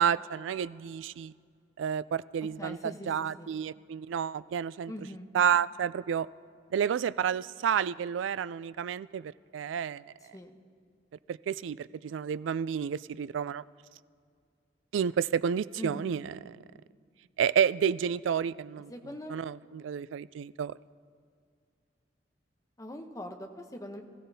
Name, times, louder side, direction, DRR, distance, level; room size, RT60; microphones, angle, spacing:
voice 1, 0.0-1.3 1.8-4.9 5.3-6.3 6.7-10.0 11.3-13.6 14.9-16.6 17.4-18.9 19.3-20.7, right 8 dB, 85° right, 18 dB, 0.3 m, -30 dB
voice 2, 2.6-3.1 3.4-3.5 4.9-5.3 10.3-10.6 15.8-16.1 18.9-19.3 22.8-24.0, left 1 dB, 20° left, 4 dB, 0.8 m, -42 dB
24.0 x 14.5 x 2.8 m, 2.2 s
head